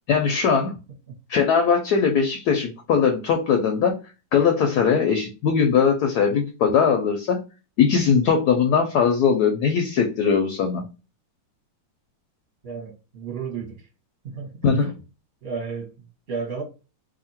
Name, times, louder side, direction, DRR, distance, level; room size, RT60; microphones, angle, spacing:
voice 1, 0.1-0.7 1.3-3.9 4.3-7.4 7.8-10.8 14.6-14.9, left 6 dB, 70° left, 1.0 m, -20 dB
voice 2, 12.6-13.9 14.2-14.9 15.4-16.6, right 5 dB, 40° right, 1.1 m, -33 dB
2.8 x 2.6 x 4.1 m
omnidirectional pair, 2.0 m